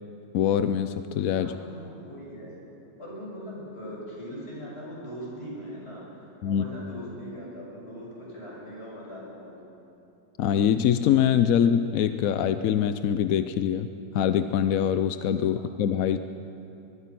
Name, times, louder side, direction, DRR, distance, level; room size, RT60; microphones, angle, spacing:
voice 1, 0.3-1.5 6.4-6.6 10.4-13.9 14.1-16.2, left 9 dB, 70° left, 11 dB, 0.8 m, -24 dB
voice 2, 1.4-2.6 3.0-9.7 15.5-15.6, equal, 30° left, -5 dB, 6.8 m, -40 dB
24.0 x 20.5 x 6.0 m, 2.8 s
omnidirectional pair, 2.0 m